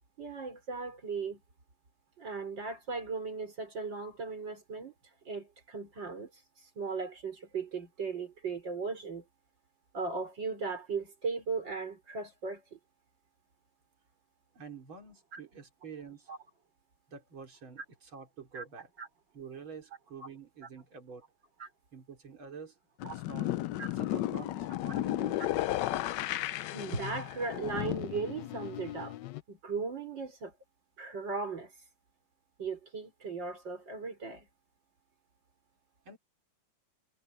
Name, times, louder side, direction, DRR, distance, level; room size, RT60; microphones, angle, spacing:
voice 1, 0.2-1.4 2.2-4.9 5.3-6.3 6.8-9.2 9.9-12.8 15.3-15.4 16.3-16.4 18.5-18.6 19.0-19.1 20.2-20.3 21.6-21.7 23.0-23.2 23.8-23.9 26.7-29.1 29.5-30.5 31.0-31.7 32.6-34.5, right 4 dB, 65° right, 5.5 m, -37 dB
voice 2, 14.5-16.3 17.1-18.9 19.3-21.2 21.9-22.8 23.0-23.5 23.9-25.6 36.1-36.2, right 5 dB, 85° right, 4.2 m, -48 dB
sound 1, 23.0-29.4, left 14 dB, 70° left, 1.1 m, -34 dB
omnidirectional pair, 2.2 m